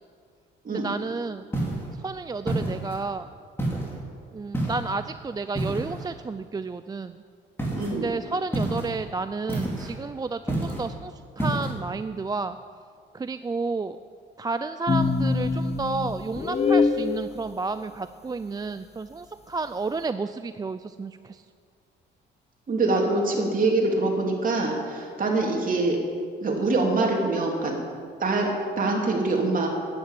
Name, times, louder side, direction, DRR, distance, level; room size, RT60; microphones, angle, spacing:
voice 1, 0.7-1.5 2.0-3.3 4.3-7.2 7.9-12.6 13.1-14.0 14.4-21.4, right 4 dB, 20° right, 11 dB, 0.4 m, -31 dB
sound 1, 1.5-1.9 2.5-3.0 3.6-4.0 4.5-5.0 5.6-6.1 7.6-7.9 8.5-8.9 9.5-10.0 10.5-10.9 11.4-11.7, right 1 dB, 10° left, 3.6 m, -28 dB
voice 2, 7.7-8.1 22.7-26.0 26.4-27.7 28.2-28.5 28.8-29.7, right 2 dB, 45° right, 0 dB, 2.9 m, -24 dB
sound 2, 14.9-17.1, left 4 dB, 30° left, 0.9 m, -23 dB
10.0 x 9.7 x 8.2 m, 2.2 s
cardioid pair, 90°, 20 cm